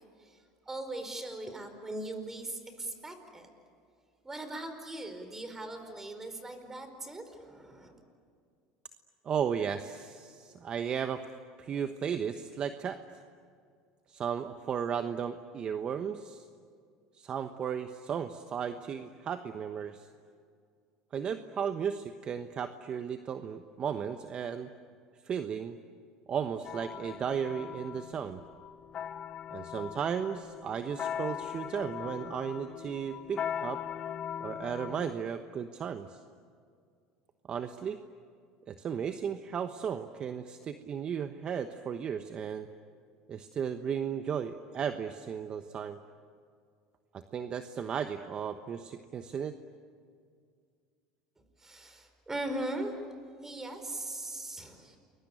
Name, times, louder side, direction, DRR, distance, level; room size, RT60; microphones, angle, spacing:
voice 1, 0.7-3.5 4.2-7.9 51.6-52.9 53.4-55.0, right 1 dB, 15° right, 7 dB, 4.8 m, -39 dB
voice 2, 9.2-11.2 11.6-13.0 14.1-16.5 17.2-20.1 21.1-24.7 25.2-25.8 26.3-28.4 29.5-33.8 34.4-36.2 37.5-38.0 38.7-42.7 43.3-46.0 47.1-49.6, right 7 dB, 40° right, 8 dB, 1.1 m, -35 dB
sound 1, 26.6-35.1, left 9 dB, 40° left, 0.9 m, -40 dB
29.0 x 22.0 x 9.1 m, 2.2 s
supercardioid pair, 100°, 3 cm